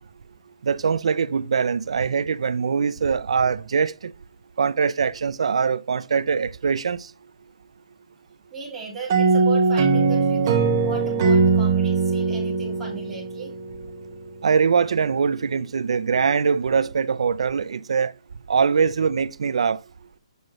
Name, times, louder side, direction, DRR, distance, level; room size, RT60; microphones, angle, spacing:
voice 1, 0.6-4.1 4.6-7.1 14.4-18.1 18.5-19.8, right 6 dB, 60° right, 0.4 m, -22 dB
voice 2, 8.5-13.5, right 5 dB, 5° right, 2.4 m, -36 dB
sound 1, 9.1-13.7, right 4 dB, 25° right, 0.8 m, -20 dB
7.9 x 6.5 x 3.0 m
hypercardioid pair, 175°, 4 cm